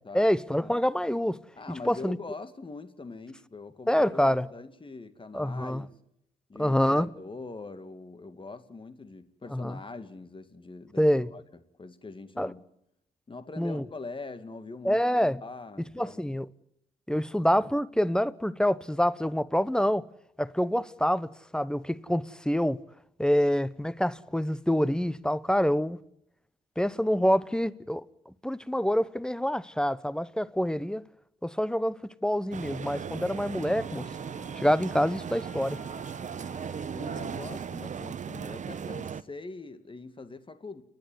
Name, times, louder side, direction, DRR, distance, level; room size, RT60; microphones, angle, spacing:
voice 1, 0.1-1.4 1.9-2.2 3.9-4.5 5.3-5.8 6.6-7.1 9.5-9.8 11.0-11.3 12.4-12.5 13.6-13.8 14.8-15.4 16.0-16.5 17.1-20.1 20.4-22.8 23.2-26.0 26.8-31.1 31.4-34.0 34.6-35.8, equal, 5° left, 0.9 m, -26 dB
voice 2, 1.6-6.0 6.5-11.1 11.3-11.4 11.8-12.6 13.3-15.0 15.4-16.4 36.9-40.8, left 3 dB, 30° left, 2.3 m, -43 dB
sound 1, 32.5-39.2, right 7 dB, 50° right, 1.0 m, -37 dB
Wind instrument woodwind instrument, 33.8-37.9, left 4 dB, 45° left, 5.1 m, -53 dB
29.5 x 10.5 x 9.7 m
supercardioid pair, 50°, 17 cm